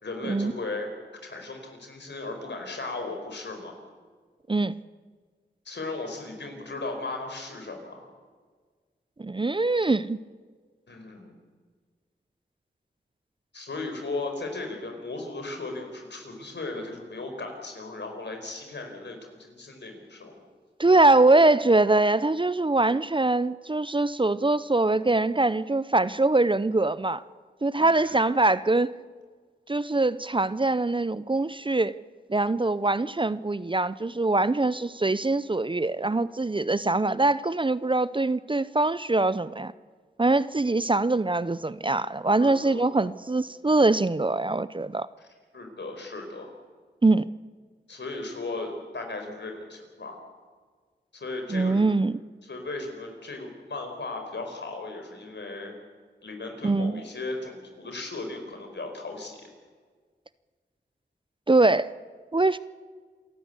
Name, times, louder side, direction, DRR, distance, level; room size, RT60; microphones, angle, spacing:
voice 1, 0.0-0.9 1.2-3.7 5.6-8.1 10.9-11.3 13.5-20.4 27.7-28.2 42.4-42.9 45.2-45.3 45.5-46.5 47.9-50.2 51.1-51.8 52.4-55.7 56.2-59.5, left 3 dB, 70° left, 4 dB, 5.0 m, -36 dB
voice 2, 9.2-10.2 20.8-27.2 27.6-28.9 29.7-31.9 32.3-39.7 40.2-45.1 47.0-47.3 51.5-52.2 56.6-57.0 61.5-61.9 62.3-62.6, right 2 dB, 25° right, 16 dB, 0.6 m, -23 dB
27.5 x 12.5 x 8.3 m, 1.5 s
cardioid pair, 45°, 19 cm